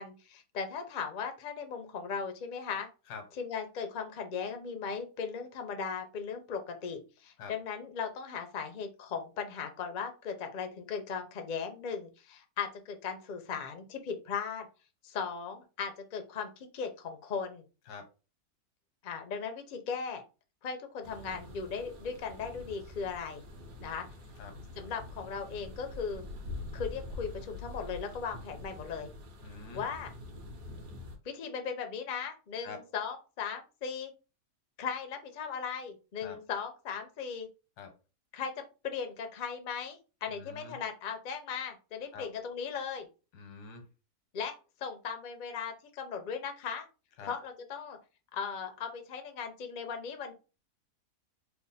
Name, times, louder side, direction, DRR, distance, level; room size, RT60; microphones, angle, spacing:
voice 1, 0.0-2.9 3.4-14.7 15.0-17.6 19.0-20.2 20.6-23.4 23.8-24.1 24.8-26.2 26.7-29.1 29.7-30.1 31.2-34.1 34.8-37.5 38.3-43.1 44.3-44.5 44.8-46.9 47.2-48.0 48.3-50.3, left 6 dB, 65° left, 0.4 m, -38 dB
sound 1, 21.0-31.2, left 2 dB, 65° right, 1.3 m, -45 dB
voice 2, 29.4-29.8 32.6-32.8 36.2-36.4 37.8-37.9 40.3-40.8 42.1-42.3 43.3-43.8 47.2-47.3, left 5 dB, 90° left, 1.4 m, -45 dB
3.4 x 2.1 x 4.0 m
omnidirectional pair, 1.7 m